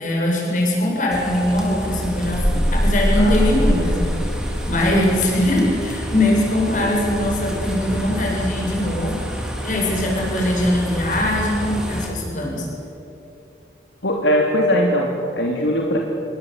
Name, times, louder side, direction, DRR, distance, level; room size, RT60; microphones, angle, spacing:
voice 1, 0.0-9.2 9.6-12.7, left 1 dB, 45° left, -1 dB, 7.6 m, -21 dB
sound 1, 1.1-12.1, equal, 5° right, 3.8 m, -25 dB
voice 2, 3.1-3.5 14.0-16.0, equal, 75° left, -1 dB, 3.2 m, -20 dB
27.5 x 23.0 x 8.5 m, 2.8 s
head